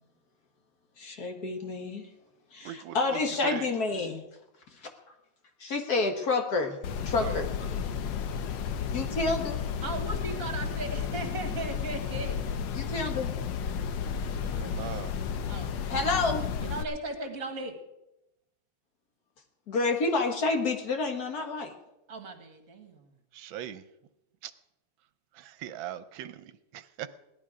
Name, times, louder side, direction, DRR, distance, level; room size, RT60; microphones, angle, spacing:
voice 1, 1.0-2.1 2.5-4.2 4.8-4.9 5.6-6.8 7.0-7.5 8.9-9.6 12.7-13.7 15.9-16.5 19.7-21.7, left 3 dB, 55° left, 1.7 m, -29 dB
voice 2, 2.6-3.7 7.2-7.4 14.5-15.3 23.3-23.8 24.4-24.5 25.3-27.1, right 10 dB, 80° right, 1.4 m, -40 dB
sound 1, 6.8-16.8, left 7 dB, 70° left, 1.4 m, -32 dB
voice 3, 9.8-12.4 15.5-15.8 16.6-17.8 22.1-23.1, right 2 dB, 45° right, 1.9 m, -37 dB
17.5 x 12.0 x 4.9 m
omnidirectional pair, 2.1 m